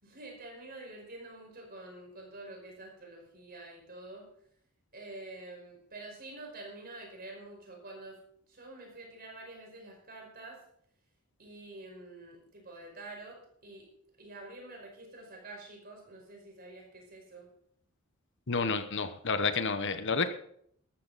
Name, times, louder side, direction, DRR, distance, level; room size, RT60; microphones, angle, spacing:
voice 1, 0.0-4.3 4.9-8.2 8.5-10.6 11.4-13.9 14.2-17.5, right 2 dB, 45° right, 1 dB, 5.2 m, -47 dB
voice 2, 18.5-20.3, left 4 dB, 55° left, 10 dB, 1.1 m, -30 dB
13.5 x 13.5 x 4.2 m, 0.66 s
head